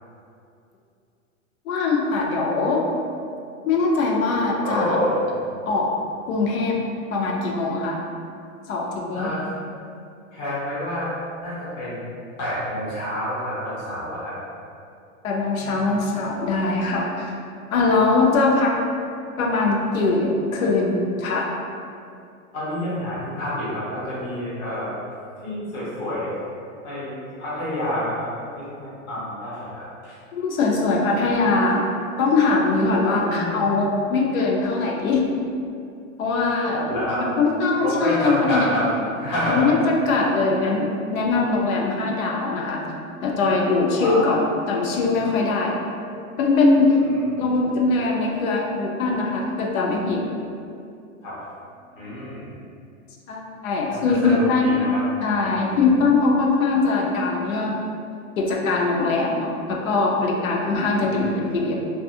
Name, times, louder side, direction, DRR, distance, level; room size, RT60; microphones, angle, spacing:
voice 1, 1.7-2.8 3.7-5.0 5.7-5.9 6.3-6.8 7.1-8.0 8.7-9.3 15.2-17.3 17.7-18.7 19.4-21.5 30.3-31.8 32.2-35.2 36.2-36.8 37.2-38.7 39.5-42.8 43.2-45.7 46.4-47.0 47.4-50.2 53.3-54.7 55.2-57.9 58.4-61.7, left 3 dB, 90° left, -1 dB, 0.6 m, -21 dB
voice 2, 4.6-5.2 9.1-9.5 10.3-11.1 11.4-12.0 12.4-14.3 15.6-15.9 22.5-24.9 25.4-26.3 26.8-28.3 28.6-30.2 33.0-33.7 36.7-37.2 37.8-38.9 39.2-39.8 40.2-40.3 43.9-44.4 46.9-47.5 51.2-51.3 51.9-52.6 53.9-55.0 55.4-55.8 61.0-61.4, left 1 dB, 20° left, -9 dB, 0.3 m, -28 dB
2.4 x 2.3 x 2.6 m, 2.5 s
supercardioid pair, 150°, 41 cm